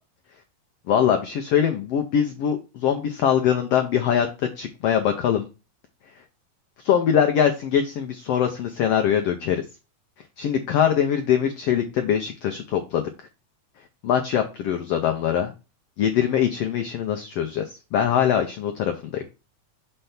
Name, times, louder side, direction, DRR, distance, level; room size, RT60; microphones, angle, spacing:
voice 1, 0.9-4.3 4.6-5.5 6.8-9.6 10.4-13.0 14.0-15.5 16.0-17.6 17.9-19.2, left 9 dB, 75° left, 6 dB, 1.4 m, -22 dB
6.6 x 3.4 x 5.7 m, 0.29 s
omnidirectional pair, 3.7 m